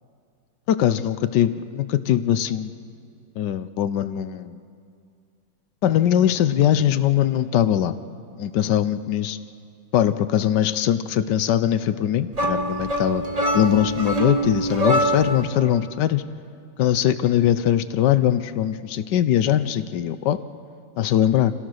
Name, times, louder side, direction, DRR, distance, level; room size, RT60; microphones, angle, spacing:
voice 1, 0.7-2.7 3.4-4.6 5.8-8.0 8.4-9.4 9.9-13.2 13.5-16.2 16.8-20.4 21.0-21.5, left 11 dB, 70° left, 13 dB, 1.3 m, -21 dB
sound 1, 12.3-15.5, right 1 dB, 20° right, 1.5 m, -24 dB
27.5 x 16.5 x 6.4 m, 2.3 s
omnidirectional pair, 2.0 m